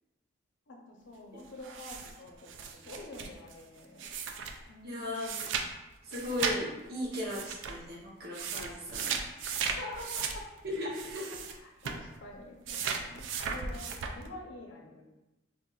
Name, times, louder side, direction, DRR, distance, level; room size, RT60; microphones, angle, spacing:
voice 1, 0.7-4.1 4.7-5.4 9.6-10.4 11.1-15.0, left 2 dB, 85° left, 0 dB, 0.6 m, -47 dB
sound 1, 1.6-4.7 5.1-5.7 5.9-6.6 7.1-7.8 8.2-11.6 11.8-12.1 12.7-14.3, right 6 dB, 80° right, 0.3 m, -36 dB
voice 2, 4.8-5.5 6.1-9.1 10.7-11.3, left 1 dB, 55° right, -4 dB, 0.8 m, -37 dB
3.9 x 2.5 x 2.3 m, 0.99 s
head